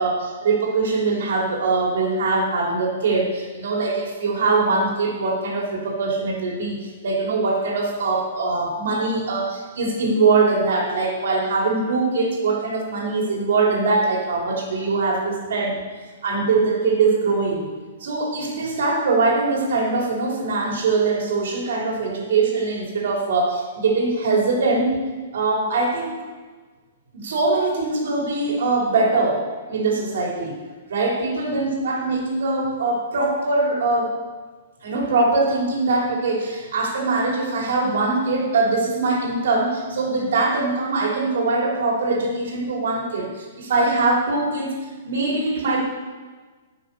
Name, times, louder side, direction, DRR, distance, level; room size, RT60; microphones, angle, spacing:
voice 1, 0.0-15.8 16.2-17.6 18.0-25.0 25.3-26.1 27.1-30.6 30.9-34.2 34.8-44.7 45.0-45.8, right 3 dB, 75° right, -1 dB, 3.1 m, -22 dB
11.0 x 6.5 x 5.3 m, 1.4 s
hypercardioid pair, 155°, 0 cm